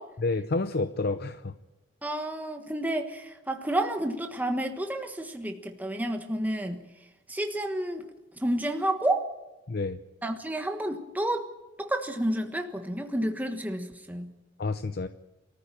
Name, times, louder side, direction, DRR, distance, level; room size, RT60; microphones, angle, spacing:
voice 1, 0.2-1.5 9.7-10.0 14.6-15.1, left 3 dB, 55° left, 11 dB, 0.7 m, -29 dB
voice 2, 2.0-6.8 7.3-8.1 8.4-9.3 10.2-11.5 11.8-14.3, right 1 dB, 10° right, 5 dB, 1.4 m, -30 dB
24.0 x 14.0 x 8.9 m, 1.1 s
head